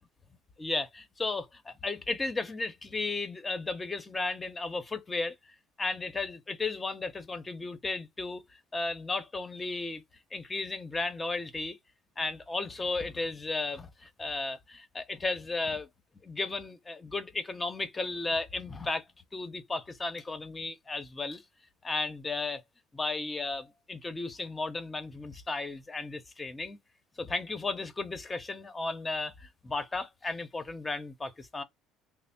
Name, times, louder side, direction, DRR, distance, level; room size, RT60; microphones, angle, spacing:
voice 1, 0.6-5.3 5.8-8.4 8.7-10.0 10.3-11.8 12.2-15.9 16.2-19.0 19.3-21.4 21.8-22.6 22.9-26.8 27.2-31.6, left 3 dB, 25° left, 0.8 m, -34 dB
3.3 x 2.0 x 4.2 m
supercardioid pair, 80°, 0 cm